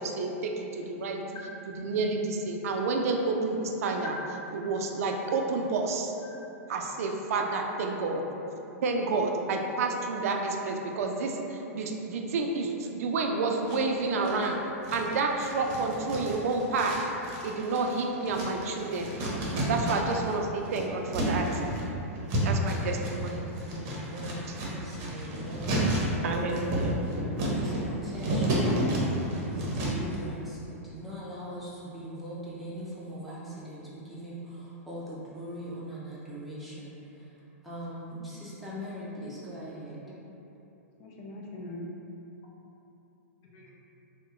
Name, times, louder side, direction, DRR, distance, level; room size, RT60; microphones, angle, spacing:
voice 1, 0.0-1.2 1.7-4.1 4.5-6.1 6.7-8.2 8.8-14.6 14.9-17.0 17.4-19.1 19.7-21.5 22.3-23.4 26.2-27.0, right 3 dB, 70° right, 2 dB, 0.4 m, -29 dB
sound 1, 13.7-14.5 14.8-20.3 20.6-30.2, right 1 dB, 40° right, 0.7 m, -31 dB
voice 2, 22.2-22.9 39.2-39.3 40.1-40.2 41.0-41.9 43.5-43.8, left 2 dB, 40° left, -2 dB, 0.6 m, -45 dB
voice 3, 23.7-26.9 27.5-37.0 37.6-40.0, equal, ahead, -9 dB, 0.7 m, -41 dB
2.9 x 2.1 x 3.5 m, 3.0 s
hypercardioid pair, 125°, 8 cm